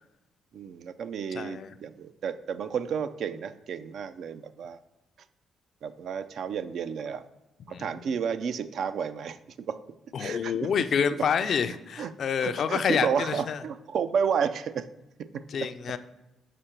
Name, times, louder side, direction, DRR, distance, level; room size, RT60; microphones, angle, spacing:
voice 1, 0.5-4.8 5.8-7.2 7.7-9.8 10.2-10.7 11.2-11.3 12.0-12.1 12.4-14.9 15.3-15.7, right 7 dB, 65° right, 12 dB, 0.3 m, -31 dB
voice 2, 1.3-1.7 7.7-7.8 10.1-13.6 15.5-16.0, left 7 dB, 60° left, 11 dB, 0.3 m, -28 dB
5.1 x 4.5 x 4.3 m, 0.97 s
cardioid pair, 90°, 0 cm